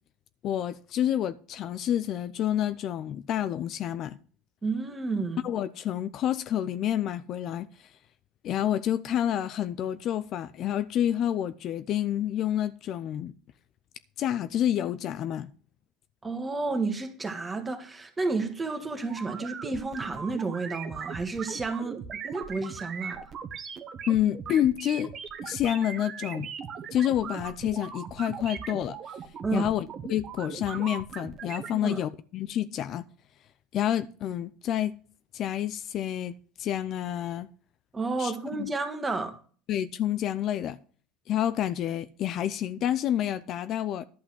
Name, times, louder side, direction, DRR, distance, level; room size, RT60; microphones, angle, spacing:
voice 1, 0.4-4.2 5.4-7.7 8.4-13.3 14.2-15.5 24.1-25.1 25.4-26.5 26.9-29.0 29.5-33.0 33.7-35.0 35.3-37.5 38.2-38.7 39.7-40.8 41.3-44.0, left 11 dB, 50° left, 0.6 m, -28 dB
voice 2, 4.6-5.4 16.2-22.0 22.2-23.2 29.4-29.7 31.7-32.0 37.9-39.4, right 3 dB, 20° right, 1.7 m, -31 dB
sound 1, 19.1-31.7, right 6 dB, 40° right, 1.2 m, -39 dB
11.5 x 5.7 x 6.3 m
supercardioid pair, 105°, 0 cm